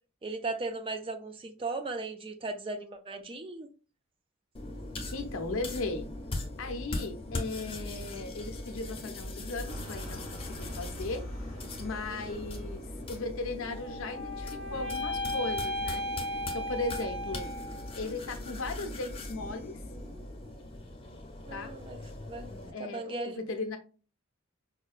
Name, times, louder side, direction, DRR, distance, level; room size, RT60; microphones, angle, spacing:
voice 1, 0.2-3.7 12.1-12.4 21.5-22.0 22.3-22.5 22.8-23.5, right 3 dB, 25° right, 0.3 m, -37 dB
sound 1, 4.5-22.7, left 2 dB, 25° left, 0.6 m, -40 dB
voice 2, 5.1-6.1 6.6-11.3 11.8-16.1 16.5-17.5 17.9-19.8 21.5-21.8 22.7-23.8, left 3 dB, 65° left, 0.6 m, -37 dB
sound 2, 9.7-13.4, equal, 70° right, 1.3 m, -45 dB
sound 3, 13.7-18.0, left 1 dB, 50° right, 1.0 m, -36 dB
4.8 x 2.2 x 2.4 m
head